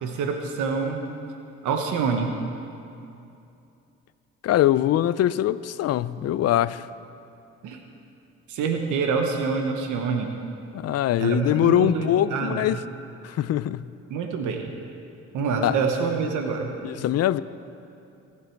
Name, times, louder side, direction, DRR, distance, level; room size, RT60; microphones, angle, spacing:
voice 1, 0.0-1.0 1.6-2.4 7.6-7.8 8.5-10.3 11.2-12.8 14.1-14.6 15.3-16.7, right 5 dB, 85° right, 1.1 m, -26 dB
voice 2, 4.4-6.9 10.7-12.8 13.2-13.9 15.6-15.8 16.8-17.4, left 12 dB, 55° left, 0.5 m, -22 dB
21.0 x 7.5 x 4.6 m
cardioid pair, 90°, 30 cm